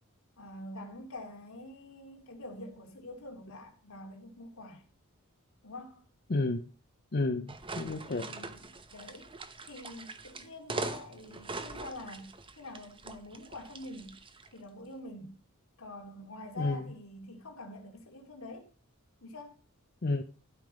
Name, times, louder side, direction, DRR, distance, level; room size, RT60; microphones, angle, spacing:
voice 1, 0.4-4.8 5.6-6.0 8.1-9.3 9.7-14.2 14.5-15.4 15.8-18.7 19.2-19.6, left 1 dB, 70° left, 2.6 m, -46 dB
voice 2, 6.3-6.7 7.1-8.3 16.6-16.9 20.0-20.2, left 2 dB, 45° left, 0.7 m, -31 dB
sound 1, 7.5-14.5, right 3 dB, 25° right, 0.9 m, -42 dB
12.5 x 5.4 x 5.2 m
head